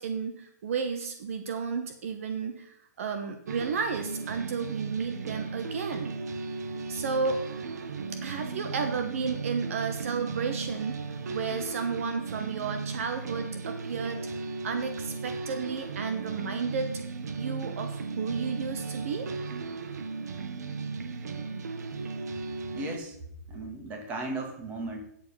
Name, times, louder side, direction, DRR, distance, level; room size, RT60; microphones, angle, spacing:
voice 1, 0.0-6.2 6.9-7.4 8.2-14.3 14.6-16.9 17.3-19.3, right 5 dB, 50° right, 7 dB, 1.2 m, -33 dB
sound 1, 3.5-23.0, right 4 dB, 70° right, 1.2 m, -36 dB
voice 2, 22.8-23.1 23.5-25.0, right 2 dB, 20° right, 2 dB, 1.9 m, -36 dB
9.6 x 7.7 x 5.5 m, 0.74 s
hypercardioid pair, 165°, 9 cm